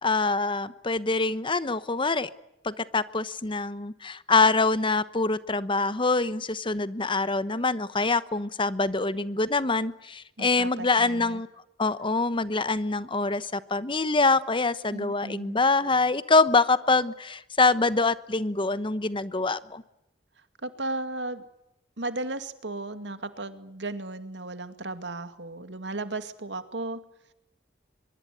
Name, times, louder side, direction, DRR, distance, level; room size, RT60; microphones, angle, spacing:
voice 1, 0.0-2.3 2.6-11.5 11.8-19.8, left 3 dB, 30° left, 15 dB, 1.1 m, -25 dB
voice 2, 10.4-11.4 14.9-15.6 20.6-21.4 22.0-27.0, right 2 dB, 80° right, 10 dB, 2.3 m, -35 dB
24.0 x 23.0 x 9.4 m, 0.82 s
head